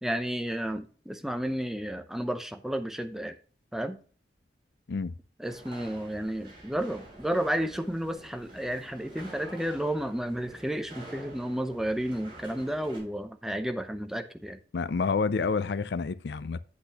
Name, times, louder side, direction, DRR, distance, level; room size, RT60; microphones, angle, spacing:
voice 1, 0.0-3.4 3.7-4.0 5.4-14.6, right 1 dB, ahead, 0.6 m, -32 dB
sound 1, 5.5-13.0, right 1 dB, 30° right, 3.9 m, -48 dB
voice 2, 14.7-16.6, left 4 dB, 70° left, 0.5 m, -28 dB
8.4 x 8.1 x 2.9 m
head